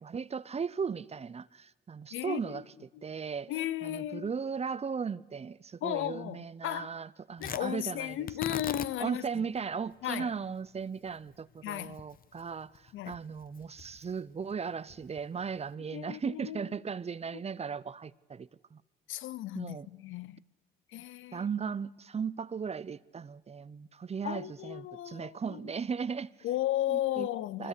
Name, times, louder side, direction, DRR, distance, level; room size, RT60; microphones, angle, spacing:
voice 1, 0.0-2.6 3.0-3.5 3.8-8.6 9.0-18.8 19.5-19.9 21.3-26.3 26.9-27.3 27.6-27.7, right 6 dB, 30° right, 0.7 m, -37 dB
voice 2, 2.1-2.6 2.9-3.0 3.5-4.3 5.8-6.9 7.4-9.4 10.0-10.3 11.6-12.0 12.9-13.2 15.9-16.6 19.1-20.4 20.9-21.4 24.2-25.7 26.4-27.7, left 13 dB, 80° left, 0.7 m, -35 dB
Tearing, 7.4-15.7, left 8 dB, 45° left, 0.9 m, -45 dB
25.0 x 21.0 x 8.3 m
cardioid pair, 90°, 20 cm